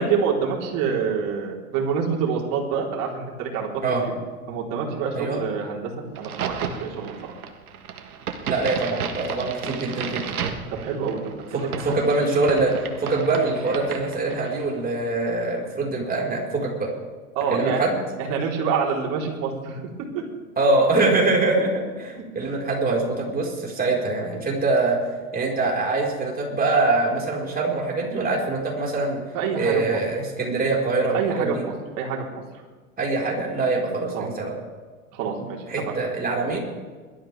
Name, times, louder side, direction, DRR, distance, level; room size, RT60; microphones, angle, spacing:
voice 1, 0.0-4.1 4.5-7.3 10.8-11.9 17.3-17.9 18.2-19.8 20.1-20.2 22.4-22.5 29.3-29.8 31.1-32.2 34.1-34.3 35.1-35.6 35.9-36.0, right 6 dB, 45° right, -1 dB, 4.3 m, -27 dB
Crack, 6.1-14.7, right 7 dB, 80° right, 1.7 m, -33 dB
voice 2, 8.5-10.4 11.5-12.7 13.0-16.9 17.5-17.9 20.6-25.0 25.3-29.2 29.6-31.6 33.0-34.5 35.4-36.6, right 3 dB, 20° right, -2 dB, 5.0 m, -24 dB
22.0 x 13.0 x 3.6 m, 1.4 s
hypercardioid pair, 100°, 43 cm